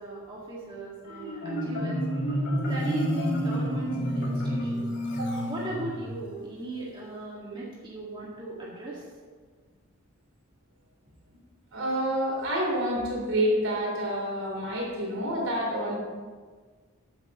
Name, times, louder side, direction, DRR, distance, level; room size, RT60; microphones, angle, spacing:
voice 1, 0.0-2.0 2.7-4.9 5.4-9.0, right 1 dB, 25° right, -6 dB, 1.9 m, -37 dB
Marimba xylophone, 1.1-6.2, equal, 60° left, 3.4 m, -29 dB
voice 2, 11.7-16.0, equal, 70° right, -3 dB, 3.6 m, -28 dB
14.0 x 9.2 x 3.1 m, 1.5 s
head